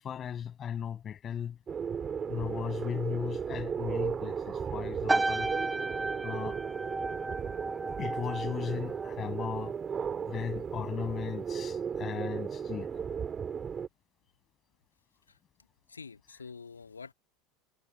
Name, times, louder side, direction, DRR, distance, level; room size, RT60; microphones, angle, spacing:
voice 1, 0.0-1.6 2.3-5.5 6.2-6.6 8.0-9.7 10.3-13.3, left 8 dB, 30° left, 6.8 m, -37 dB
sound 1, 1.7-13.9, right 7 dB, 25° right, 3.9 m, -35 dB
sound 2, 5.1-9.7 10.0-10.4, right 2 dB, 10° right, 1.6 m, -34 dB
voice 2, 15.9-17.1, left 5 dB, 80° left, 2.6 m, -46 dB
figure-of-eight pair, 75°, 0 cm